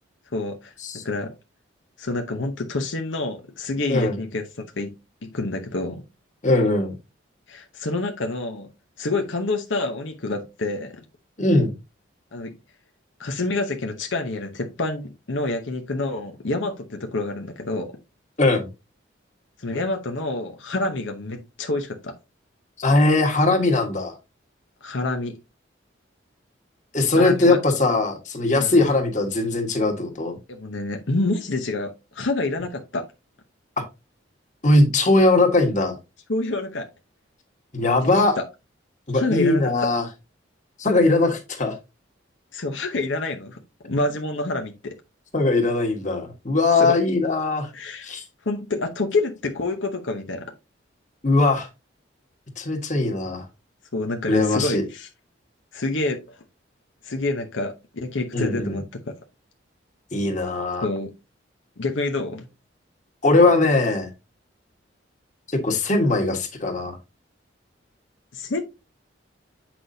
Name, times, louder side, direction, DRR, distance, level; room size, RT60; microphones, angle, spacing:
voice 1, 0.3-1.3 2.0-4.5 4.8-4.9 5.2-6.0 7.5-8.7 9.0-11.0 12.3-12.5 13.2-18.0 19.6-22.2 24.8-25.4 27.2-27.6 28.5-28.8 30.5-33.1 36.3-36.9 38.0-38.4 39.1-39.9 42.5-45.0 46.8-46.9 47.7-48.1 48.5-50.5 53.9-55.1 55.7-56.4 57.0-58.8 60.8-61.1 61.8-62.5 68.3-68.6, left 2 dB, 75° left, 0.9 m, -27 dB
voice 2, 6.4-6.9 11.4-11.7 18.4-18.7 22.8-24.1 26.9-30.4 33.8-33.9 34.6-36.0 37.7-38.4 39.1-40.0 40.8-41.7 45.3-47.7 48.0-48.2 51.2-51.7 52.6-53.4 54.3-54.8 58.3-58.8 60.1-60.9 63.2-64.1 65.5-67.0, left 2 dB, 40° left, 1.6 m, -20 dB
8.0 x 6.0 x 2.7 m
head